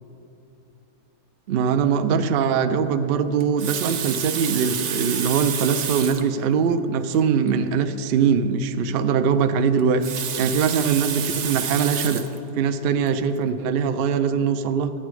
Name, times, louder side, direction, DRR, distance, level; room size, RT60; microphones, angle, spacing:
voice 1, 1.5-10.0 10.4-12.2 12.5-14.9, right 6 dB, 80° right, 9 dB, 0.5 m, -22 dB
Water tap faucet, 3.4-6.3 7.1-7.2 7.5-7.6 9.8-12.4 13.1-13.3, right 8 dB, 60° right, 0.8 m, -29 dB
11.5 x 8.9 x 4.8 m, 2.8 s
omnidirectional pair, 1.6 m